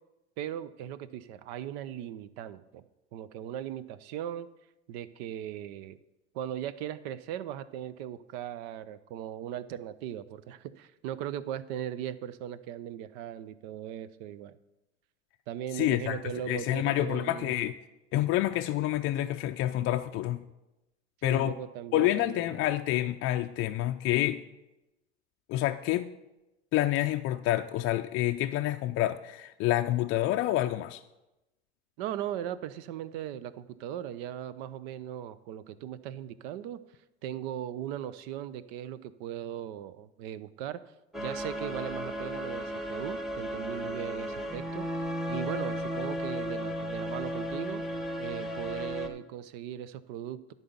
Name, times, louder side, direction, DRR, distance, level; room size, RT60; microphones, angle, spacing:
voice 1, 0.4-2.8 3.1-4.5 4.9-6.0 6.3-14.6 15.5-17.7 21.2-22.6 32.0-36.8 37.2-40.8 41.2-44.9 45.3-47.8 48.2-50.5, right 10 dB, 65° right, 15 dB, 0.7 m, -38 dB
voice 2, 15.7-16.2 16.5-17.7 18.1-20.4 21.2-21.6 21.9-24.4 25.5-26.1 26.7-31.0, left 14 dB, 40° left, 6 dB, 0.4 m, -28 dB
sound 1, 41.1-49.1, equal, ahead, 1.1 m, -34 dB
10.5 x 4.1 x 7.3 m, 0.97 s
hypercardioid pair, 100°, 33 cm